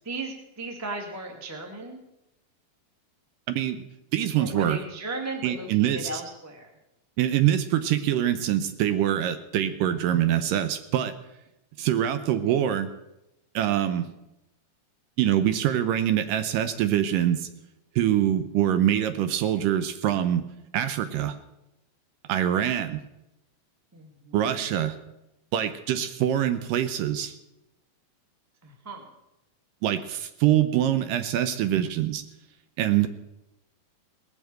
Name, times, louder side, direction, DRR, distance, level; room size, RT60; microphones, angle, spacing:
voice 1, 0.0-2.0 4.4-6.7 12.3-12.6 23.9-24.7 28.6-29.1, right 2 dB, 10° right, 2 dB, 0.7 m, -36 dB
voice 2, 3.5-3.8 4.1-4.8 5.4-6.1 7.2-11.1 11.8-12.9 13.6-14.1 15.2-17.5 18.0-20.5 20.7-21.4 22.3-23.0 24.3-25.0 25.5-27.4 29.8-32.2 32.8-33.1, right 11 dB, 80° right, 11 dB, 2.1 m, -24 dB
19.0 x 7.1 x 7.6 m, 0.90 s
omnidirectional pair, 4.2 m